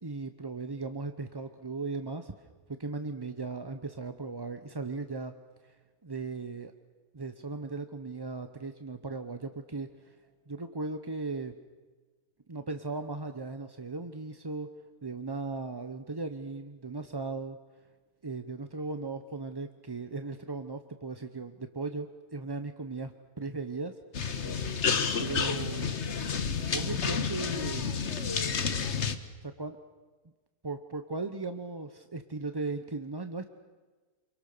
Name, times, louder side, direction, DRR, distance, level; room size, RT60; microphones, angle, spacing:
voice 1, 0.0-2.3 2.7-5.3 5.6-5.8 6.0-6.7 7.1-10.2 10.5-11.5 12.5-14.7 15.0-17.6 18.2-24.0 25.2-25.9 26.7-27.9 29.4-29.8 30.6-33.5, right 3 dB, 25° right, 8 dB, 0.6 m, -37 dB
sound 1, 24.1-29.2, left 6 dB, 50° left, 1.4 m, -30 dB
28.5 x 23.5 x 6.7 m, 1.3 s
omnidirectional pair, 1.6 m